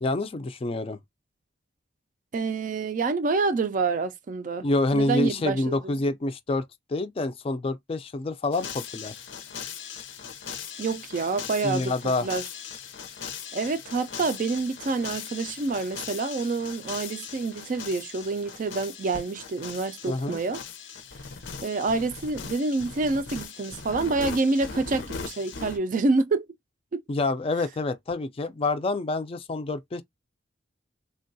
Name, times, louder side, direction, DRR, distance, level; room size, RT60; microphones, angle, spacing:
voice 1, 0.0-1.0 4.6-6.6 6.9-9.2 11.6-12.3 20.1-20.4 27.1-30.0, left 2 dB, 30° left, 0.4 m, -27 dB
voice 2, 2.3-4.7 4.9-6.0 10.8-11.9 12.2-12.4 13.5-20.6 21.6-26.5 26.9-27.0, right 3 dB, 45° right, 0.3 m, -27 dB
sound 1, 8.5-25.8, left 6 dB, 80° left, 0.6 m, -39 dB
3.5 x 2.2 x 2.6 m
head